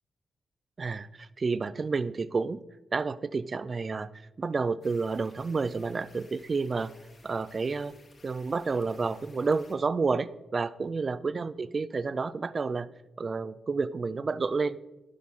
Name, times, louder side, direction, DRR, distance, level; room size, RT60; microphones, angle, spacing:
voice 1, 0.8-2.6 2.9-4.1 4.4-6.9 7.2-7.9 8.2-12.9 13.2-14.8, right 4 dB, 40° right, 17 dB, 0.5 m, -30 dB
sound 1, 4.8-9.7, left 3 dB, 45° left, 2.2 m, -58 dB
12.0 x 10.0 x 3.7 m, 1.1 s
cardioid pair, 95°, 0 cm